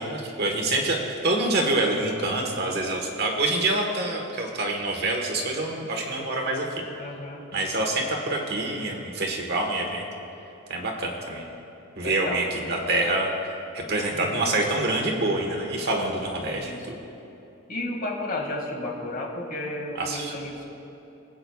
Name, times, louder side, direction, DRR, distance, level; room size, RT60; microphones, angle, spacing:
voice 1, 0.0-6.7 7.5-10.1 10.7-11.5 12.0-13.3 13.7-17.0 20.0-20.3, right 2 dB, 50° right, 1 dB, 1.3 m, -26 dB
voice 2, 7.0-7.4 12.0-12.4 14.1-14.5 16.5-16.9 17.7-20.7, left 2 dB, 40° left, -1 dB, 2.0 m, -33 dB
24.0 x 8.8 x 2.3 m, 2.9 s
head